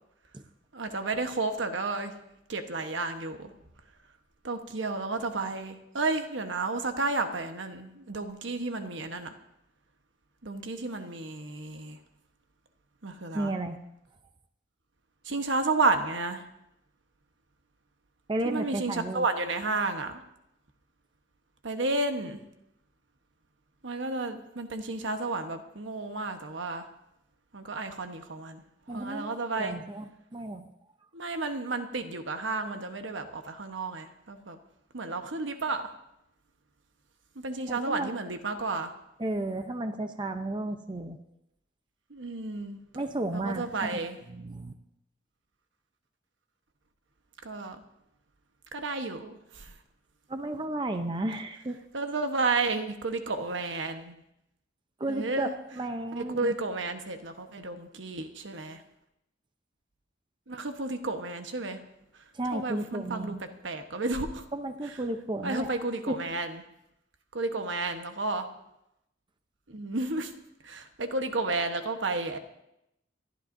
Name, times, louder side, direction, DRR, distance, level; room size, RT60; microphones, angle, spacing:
voice 1, 0.7-2.1 2.5-3.5 4.4-9.3 10.4-12.0 13.0-13.5 15.2-16.4 18.4-20.2 21.6-22.4 23.8-26.9 27.5-28.6 28.9-29.8 31.1-34.6 34.9-35.9 37.4-38.9 42.1-42.8 43.3-44.2 47.4-47.8 48.7-49.7 51.9-54.2 55.0-55.5 56.2-58.8 60.5-61.8 62.5-64.5 65.4-66.6 67.3-68.5 69.7-70.3 70.6-72.4, right 3 dB, 80° right, 6 dB, 1.1 m, -32 dB
voice 2, 13.3-13.8 18.3-19.2 28.9-30.0 30.3-30.7 37.7-38.1 39.2-41.2 42.9-44.8 50.3-51.8 55.0-55.5 55.8-56.5 62.3-63.4 64.5-65.7 66.1-66.2, right 2 dB, 25° right, 7 dB, 0.7 m, -33 dB
27.0 x 12.5 x 2.7 m, 0.83 s
head